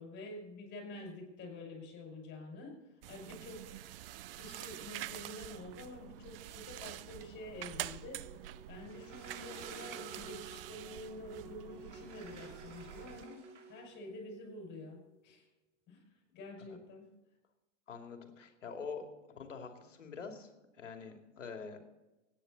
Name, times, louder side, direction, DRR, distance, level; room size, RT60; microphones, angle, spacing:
voice 1, 0.0-3.6 4.3-8.4 8.7-13.4 13.7-15.5 15.9-16.0 16.3-17.1, left 2 dB, 30° left, 1 dB, 5.4 m, -48 dB
sound 1, 3.0-13.2, right 14 dB, 50° right, 0.6 m, -47 dB
sound 2, 7.9-15.1, right 1 dB, 5° right, 1.8 m, -55 dB
Sliding door, 8.8-10.8 11.7-13.9, right 5 dB, 70° right, 2.6 m, -55 dB
voice 2, 17.9-21.8, left 5 dB, 75° left, 4 dB, 2.7 m, -46 dB
25.5 x 9.8 x 4.1 m, 1.0 s
hypercardioid pair, 110°, 37 cm